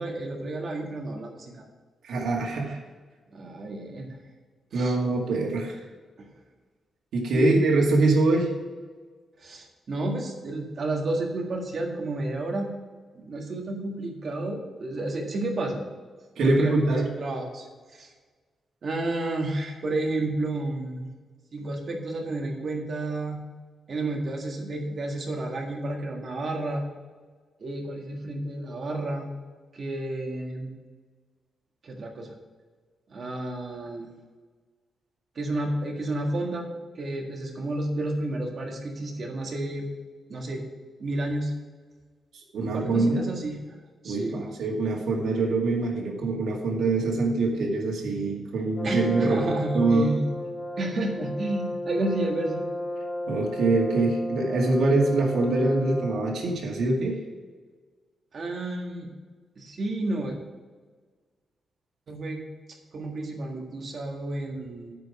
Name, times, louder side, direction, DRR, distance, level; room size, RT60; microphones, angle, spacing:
voice 1, 0.0-1.6 3.3-4.2 4.7-5.0 7.3-7.5 9.4-12.7 13.1-15.8 16.4-17.7 17.9-18.1 18.8-21.1 21.5-23.4 23.9-26.9 27.6-29.3 29.7-30.7 31.8-32.3 33.1-34.1 35.3-36.7 37.0-39.9 40.3-40.6 41.0-41.5 42.6-43.5 44.0-44.4 48.8-50.3 50.8-52.6 58.3-59.1 59.6-60.3 62.1-62.4 62.9-64.9, right 2 dB, 40° right, 1 dB, 1.7 m, -31 dB
voice 2, 2.0-2.8 4.7-5.8 7.1-8.5 16.4-17.1 42.5-43.2 44.0-50.1 53.3-57.2, right 2 dB, 90° right, -1 dB, 2.1 m, -24 dB
Brass instrument, 48.8-56.6, left 1 dB, 25° left, 1.2 m, -33 dB
9.1 x 5.2 x 6.5 m, 1.4 s
wide cardioid pair, 175°, 0 cm